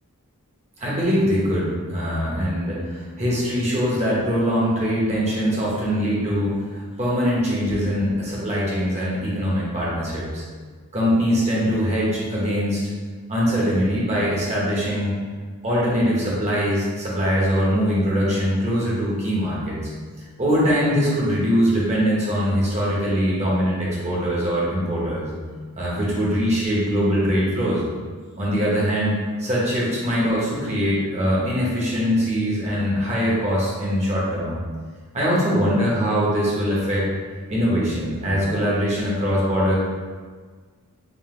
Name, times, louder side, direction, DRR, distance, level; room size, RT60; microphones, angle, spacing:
voice 1, 0.8-10.4 10.9-12.8 13.3-15.1 15.6-19.8 20.4-25.3 25.8-27.8 28.4-34.6 35.1-37.1 37.5-39.8, equal, 30° right, -6 dB, 1.0 m, -22 dB
3.8 x 2.6 x 3.7 m, 1.5 s
head